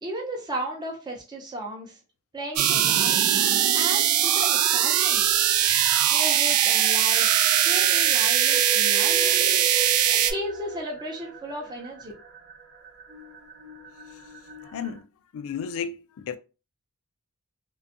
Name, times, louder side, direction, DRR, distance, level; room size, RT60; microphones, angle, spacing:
voice 1, 0.0-2.0 2.3-3.2 3.7-5.2 6.1-9.4 10.1-12.1, right 1 dB, 20° right, 0.5 m, -35 dB
sound 1, 2.6-10.3, right 10 dB, 85° right, 0.4 m, -21 dB
sound 2, 5.5-15.0, right 4 dB, 55° right, 0.8 m, -40 dB
voice 2, 15.3-16.4, left 7 dB, 65° left, 0.3 m, -32 dB
2.5 x 2.2 x 2.6 m
head